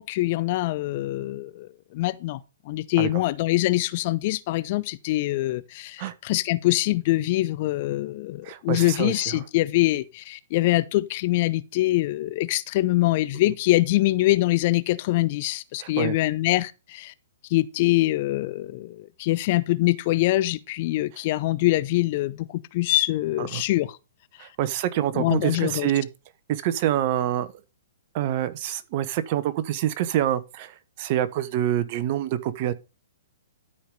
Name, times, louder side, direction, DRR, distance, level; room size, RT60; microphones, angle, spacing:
voice 1, 0.0-2.4 2.7-17.1 17.5-23.9 25.1-25.9, left 17 dB, 40° left, 0.7 m, -24 dB
voice 2, 8.4-9.4 15.8-16.2 23.4-23.6 24.4-26.1 26.5-27.5 28.1-32.7, right 12 dB, 40° right, 1.1 m, -26 dB
13.0 x 5.1 x 5.3 m
figure-of-eight pair, 115°, 0 cm